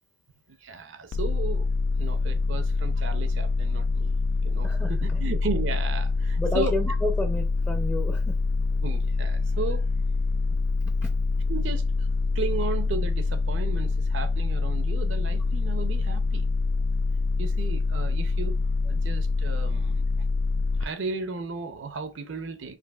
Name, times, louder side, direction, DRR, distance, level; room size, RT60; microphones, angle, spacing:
voice 1, 0.6-1.7 2.0-4.1 4.4-6.8 8.8-9.8 11.5-12.1 12.3-16.5 17.4-18.6 18.9-20.0 20.8-22.8, right 3 dB, 75° right, 0.6 m, -34 dB
sound 1, 1.1-20.9, left 3 dB, 85° left, 0.3 m, -25 dB
voice 2, 6.4-8.2, left 1 dB, 10° left, 0.5 m, -29 dB
5.1 x 2.6 x 2.3 m
head